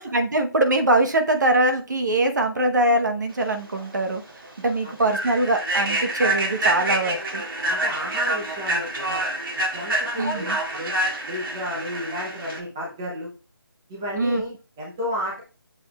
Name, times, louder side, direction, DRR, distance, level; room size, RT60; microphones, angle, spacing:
voice 1, 0.0-4.2 4.6-7.4 10.2-10.6 14.2-14.4, right 1 dB, 50° right, 5 dB, 1.0 m, -22 dB
Human voice / Train, 3.7-3.9 4.3-4.5 5.0-12.6, right 1 dB, 65° right, 2.1 m, -27 dB
voice 2, 7.7-9.3 9.7-10.9 11.3-13.3 13.9-15.4, equal, 5° right, -5 dB, 0.6 m, -32 dB
7.6 x 6.8 x 2.3 m, 0.33 s
figure-of-eight pair, 175°, 12 cm